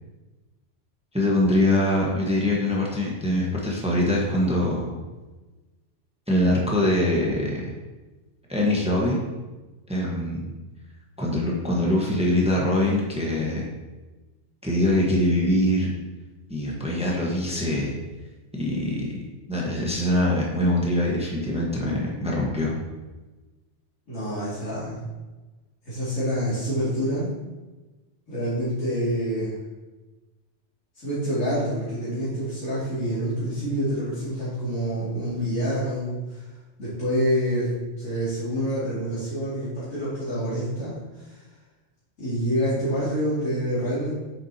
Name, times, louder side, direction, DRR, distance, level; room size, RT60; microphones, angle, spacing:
voice 1, 1.1-4.9 6.3-7.7 8.5-9.2 9.9-10.5 11.2-13.7 14.6-15.9 16.5-17.9 18.5-19.1 19.5-22.7, left 1 dB, 5° right, -3 dB, 1.3 m, -23 dB
voice 2, 24.1-25.0 25.9-27.3 28.3-29.5 30.9-36.4 36.8-41.4 42.2-44.1, equal, 80° left, -12 dB, 3.0 m, -27 dB
8.0 x 7.3 x 2.9 m, 1.2 s
omnidirectional pair, 1.3 m